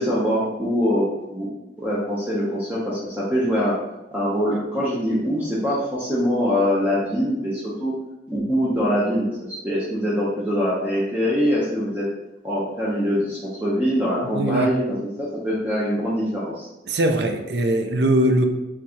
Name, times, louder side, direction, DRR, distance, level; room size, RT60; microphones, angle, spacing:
voice 1, 0.0-1.5 1.8-3.7 4.1-7.9 8.3-12.0 12.4-14.8 15.4-16.7, equal, 10° right, -7 dB, 0.7 m, -23 dB
voice 2, 14.2-14.7 16.9-18.5, right 1 dB, 65° right, 5 dB, 0.5 m, -21 dB
4.5 x 3.6 x 2.8 m, 0.96 s
head